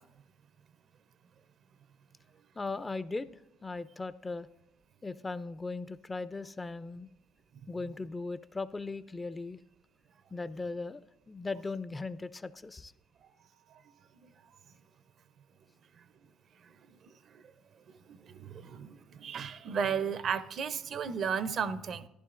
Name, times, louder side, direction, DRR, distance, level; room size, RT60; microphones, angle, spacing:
voice 1, 2.6-4.5 5.0-7.1 7.7-9.6 10.3-12.9, left 3 dB, 20° left, 15 dB, 0.4 m, -38 dB
voice 2, 18.1-22.1, right 6 dB, 55° right, 14 dB, 0.5 m, -34 dB
13.5 x 10.5 x 2.5 m, 0.86 s
supercardioid pair, 80°, 0 cm